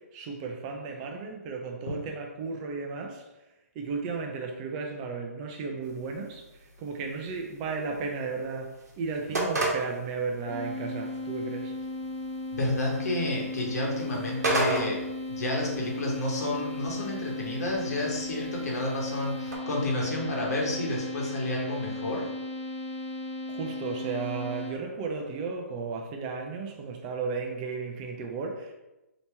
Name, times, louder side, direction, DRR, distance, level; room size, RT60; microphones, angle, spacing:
voice 1, 0.0-3.2 3.8-6.4 6.8-11.7 23.5-28.7, right 4 dB, 30° right, 3 dB, 0.4 m, -34 dB
sound 1, 5.8-19.6, right 2 dB, 90° right, 0.9 m, -37 dB
sound 2, 10.5-24.7, left 2 dB, 15° left, 0.5 m, -36 dB
voice 2, 12.5-22.3, left 1 dB, 75° left, -2 dB, 1.1 m, -30 dB
2.9 x 2.9 x 3.3 m, 1.0 s
hypercardioid pair, 145°, 9 cm